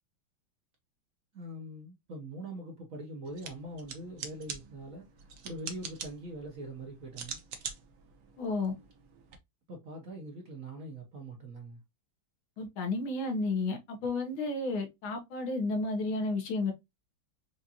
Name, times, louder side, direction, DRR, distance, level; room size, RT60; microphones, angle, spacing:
voice 1, 1.3-5.1 5.4-7.4 9.7-11.8, right 1 dB, 55° right, 1.1 m, -43 dB
sound 1, 3.3-9.4, right 6 dB, 80° right, 0.7 m, -45 dB
voice 2, 8.4-8.7 12.6-16.7, left 3 dB, 75° left, 1.7 m, -32 dB
4.8 x 2.5 x 2.7 m
omnidirectional pair, 2.3 m